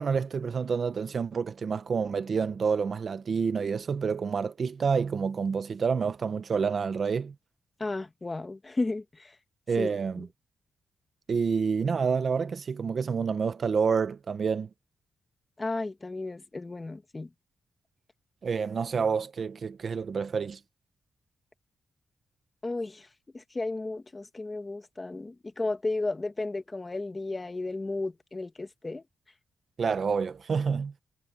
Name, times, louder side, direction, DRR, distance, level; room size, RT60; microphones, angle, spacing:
voice 1, 0.0-7.3 9.7-10.3 11.3-14.7 18.4-20.6 29.8-30.9, right 5 dB, 45° right, 0.8 m, -28 dB
voice 2, 7.8-9.3 9.8-9.9 10.2-10.3 15.6-17.3 22.6-23.1 23.3-29.0, left 2 dB, 20° left, 1.5 m, -33 dB
wide cardioid pair, 140°, 0 cm